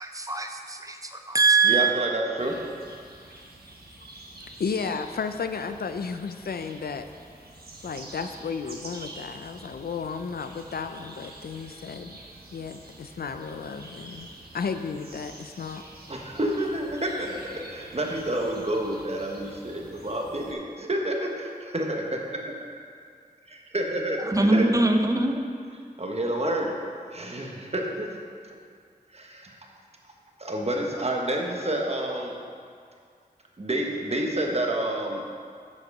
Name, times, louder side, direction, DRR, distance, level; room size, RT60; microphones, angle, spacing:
voice 1, 0.0-1.9 24.3-25.5, right 3 dB, 20° right, 4 dB, 0.8 m, -22 dB
voice 2, 1.6-2.5 16.1-22.4 22.7-22.8 23.4-24.8 26.0-26.7 27.1-28.1 28.5-28.6 29.1-29.7 30.4-32.4 33.6-35.2, right 1 dB, 40° right, 1 dB, 1.2 m, -29 dB
sound 1, 2.4-20.5, right 2 dB, 75° right, 1.3 m, -47 dB
voice 3, 4.6-7.1 7.8-12.2 12.5-15.8, left 5 dB, 75° left, 8 dB, 0.4 m, -33 dB
7.3 x 6.4 x 5.3 m, 2.2 s
wide cardioid pair, 50°, 16 cm